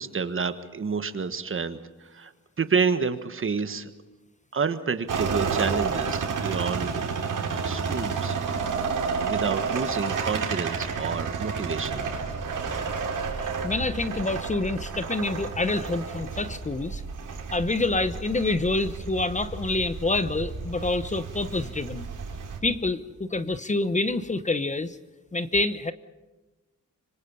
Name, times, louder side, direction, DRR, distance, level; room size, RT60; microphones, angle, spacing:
voice 1, 0.0-2.3 2.6-3.9 4.5-6.9 7.6-8.8 9.0-12.0, right 5 dB, 40° right, 11 dB, 1.5 m, -29 dB
sound 1, 5.1-22.6, right 5 dB, 80° right, 4.1 m, -31 dB
voice 2, 13.4-17.0 17.5-22.1 22.6-25.0 25.3-25.9, left 2 dB, 25° left, 12 dB, 0.9 m, -27 dB
26.0 x 25.0 x 5.5 m, 1.1 s
wide cardioid pair, 150°, 31 cm